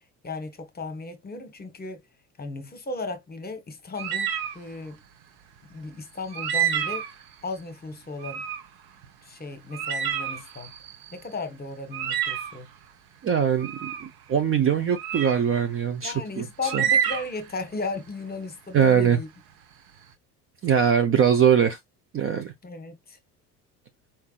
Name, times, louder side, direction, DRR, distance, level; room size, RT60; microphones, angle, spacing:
voice 1, 0.2-2.0 2.4-5.0 5.7-7.0 7.4-8.4 9.2-10.7 11.1-12.7 16.0-19.3 22.6-23.2, left 3 dB, 20° left, 1.1 m, -35 dB
sound 1, 4.0-4.6 6.3-7.2 8.2-8.6 9.0-9.1 9.7-11.1 11.9-12.6 13.6-14.1 14.9-15.4 16.6-17.5, right 9 dB, 45° right, 0.9 m, -28 dB
voice 2, 13.2-16.8 18.7-19.2 20.6-21.8 22.1-22.5, right 8 dB, 30° right, 0.6 m, -22 dB
4.5 x 3.5 x 2.4 m
hypercardioid pair, 70°, 47 cm